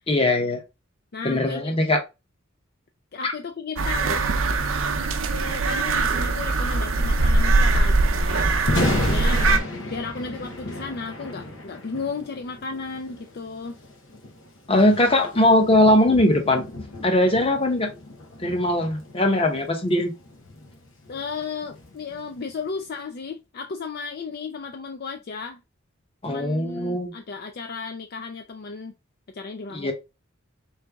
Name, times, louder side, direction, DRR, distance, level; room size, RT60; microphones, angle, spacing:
voice 1, 0.1-0.6 1.2-2.0 3.2-3.3 14.7-16.6 17.0-17.9 18.4-20.1 26.2-27.1 29.7-29.9, left 1 dB, 30° left, 0.9 m, -20 dB
voice 2, 1.1-1.8 3.1-4.4 5.3-8.6 8.8-9.5 9.9-13.8 21.1-25.6 26.2-28.9 29.3-29.9, left 4 dB, 50° left, 0.4 m, -34 dB
sound 1, 3.8-9.6, right 3 dB, 80° right, 0.6 m, -21 dB
Thunder, 8.5-22.7, left 1 dB, 80° left, 1.3 m, -34 dB
3.8 x 3.3 x 3.4 m
head